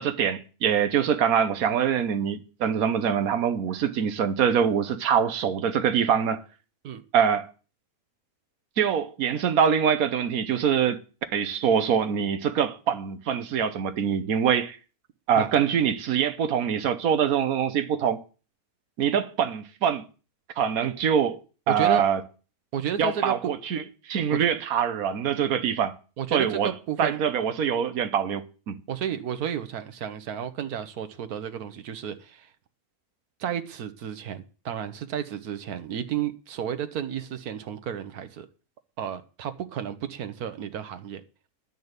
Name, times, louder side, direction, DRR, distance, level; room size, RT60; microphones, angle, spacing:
voice 1, 0.0-6.4 7.1-7.5 8.8-11.0 11.3-14.8 15.3-18.2 19.0-20.0 20.6-21.4 21.7-22.2 23.0-23.8 24.1-26.0 26.3-26.7 27.0-28.8, right 8 dB, 75° right, 1.4 m, -24 dB
voice 2, 21.7-22.0 22.7-23.5 26.2-27.2 28.9-32.5 33.4-38.5 39.0-41.2, right 9 dB, 90° right, 1.4 m, -32 dB
10.5 x 5.5 x 8.1 m
omnidirectional pair, 1.6 m